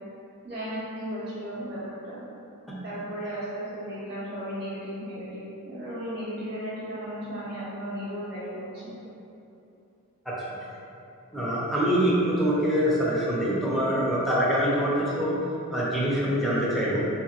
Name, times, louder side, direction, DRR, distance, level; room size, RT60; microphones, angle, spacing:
voice 1, 0.4-2.2 2.8-8.9, equal, 50° right, -10 dB, 1.1 m, -35 dB
voice 2, 11.3-15.4 15.7-17.1, equal, ahead, -9 dB, 0.6 m, -24 dB
3.9 x 2.8 x 2.4 m, 2.8 s
head